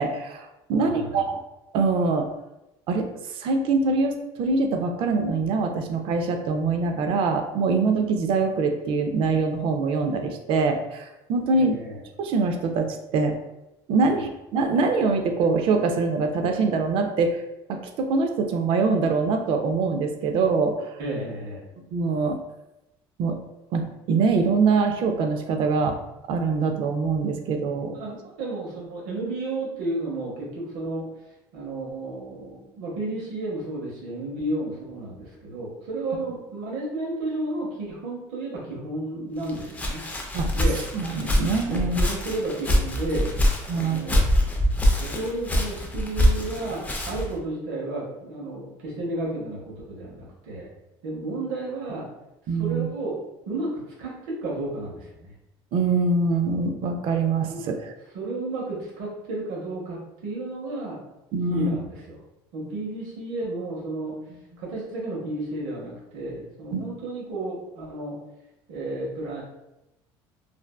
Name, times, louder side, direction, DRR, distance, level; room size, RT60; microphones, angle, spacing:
voice 1, 0.0-1.4 1.7-2.3 2.9-11.8 12.2-13.4 13.9-17.4 17.7-21.0 21.9-22.4 23.2-23.4 23.7-26.0 26.3-28.0 40.3-40.5 40.9-42.0 43.7-44.0 52.5-52.9 55.7-57.9 61.3-61.8 62.6-62.7 66.7-66.9, right 4 dB, 55° right, 5 dB, 0.4 m, -24 dB
voice 2, 0.8-1.2 11.5-12.0 14.0-14.1 21.0-21.7 27.9-31.1 31.5-40.0 40.5-40.8 41.7-43.3 43.7-44.3 45.0-50.7 51.0-52.1 52.6-53.2 53.5-53.7 54.0-55.3 57.4-57.6 58.1-61.0 61.5-62.2 62.5-64.1 64.6-68.2 68.7-69.4, right 2 dB, 80° right, -3 dB, 0.9 m, -32 dB
Walk footsteps, 39.4-47.4, equal, 15° left, 0.4 m, -24 dB
2.5 x 2.2 x 2.2 m, 0.92 s
cardioid pair, 120°, 10 cm